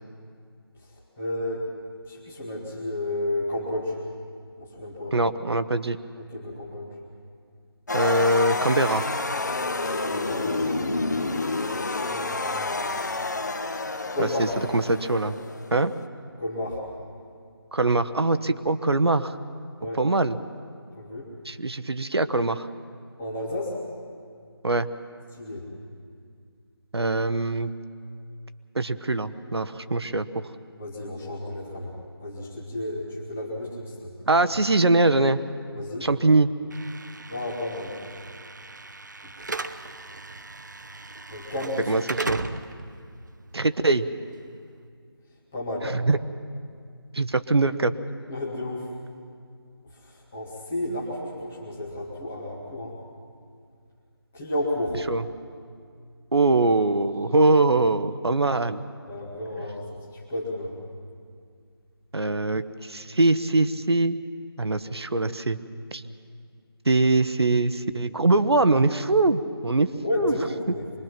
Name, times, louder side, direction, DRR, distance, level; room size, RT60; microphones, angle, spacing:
voice 1, 1.2-1.6 2.0-4.0 4.6-5.2 6.3-6.9 10.1-10.6 11.8-13.1 14.1-14.5 16.4-16.8 19.8-20.0 20.9-21.3 23.2-23.8 25.4-25.7 30.8-31.9 32.2-34.1 35.7-36.1 37.3-38.0 39.2-39.5 41.3-42.1 45.5-45.9 48.3-48.9 49.9-53.0 54.3-55.0 59.1-60.7 69.9-70.8, left 1 dB, 5° left, -6 dB, 0.6 m, -32 dB
voice 2, 5.1-6.0 7.9-9.1 14.2-14.5 14.7-15.4 15.7-15.9 17.7-19.4 20.0-20.4 21.5-22.7 24.6-24.9 26.9-27.7 28.7-30.4 34.3-35.4 36.0-36.5 41.9-42.0 42.3-42.4 43.5-44.1 45.8-46.2 47.1-47.9 55.1-55.2 56.3-58.8 62.1-64.2 64.6-65.6 65.9-66.0 66.8-70.3, right 2 dB, 75° right, 11 dB, 1.0 m, -22 dB
sound 1, 7.9-16.0, left 3 dB, 45° left, 1.0 m, -29 dB
Slam / Alarm, 36.7-44.8, right 3 dB, 45° right, 0.7 m, -37 dB
24.5 x 21.0 x 5.9 m, 2.2 s
figure-of-eight pair, 175°, 13 cm